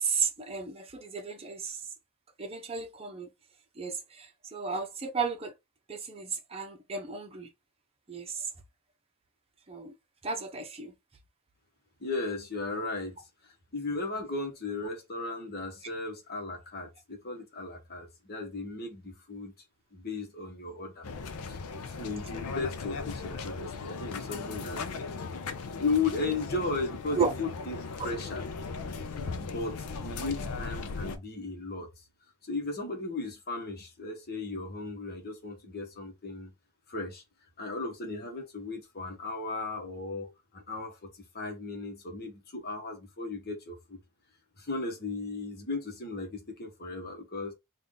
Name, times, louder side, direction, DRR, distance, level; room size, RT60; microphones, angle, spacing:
voice 1, 0.0-1.8 2.4-3.3 3.8-5.5 5.9-7.5 8.1-8.4 9.7-9.9 10.2-10.9 27.2-27.3, right 5 dB, 25° right, 0.7 m, -33 dB
voice 2, 12.0-13.2 13.4-19.5 19.9-21.1 21.5-24.8 25.8-28.4 29.4-31.9 32.4-36.5 36.9-37.2 37.6-44.0 44.6-47.5, left 3 dB, 45° left, 1.1 m, -36 dB
sound 1, 21.0-31.2, left 4 dB, 80° left, 0.5 m, -37 dB
3.4 x 2.5 x 3.7 m
head